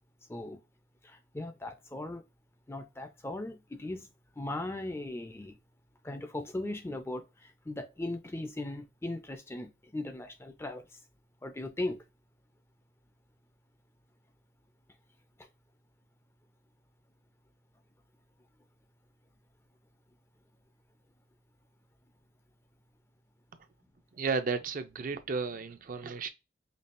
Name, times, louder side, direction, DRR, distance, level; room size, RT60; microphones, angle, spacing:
voice 1, 0.3-0.6 1.0-2.2 2.7-4.1 4.4-5.6 6.0-10.9 11.4-12.0, left 2 dB, 15° left, 0.4 m, -38 dB
voice 2, 24.1-26.3, right 4 dB, 45° right, 0.4 m, -33 dB
5.3 x 2.3 x 2.5 m
head